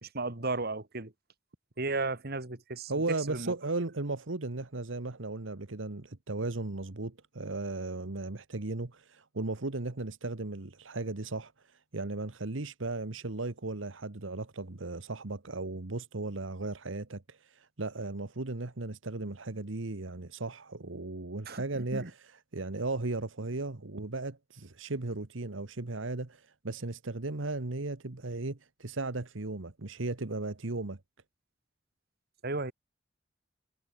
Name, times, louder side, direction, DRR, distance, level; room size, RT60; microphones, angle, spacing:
voice 1, 0.0-1.1 1.8-2.9 3.3-3.5 21.5-22.1 32.4-32.7, right 3 dB, 55° right, 2.5 m, -34 dB
voice 2, 2.9-22.2 22.5-31.0, right 2 dB, 80° right, 1.4 m, -36 dB
head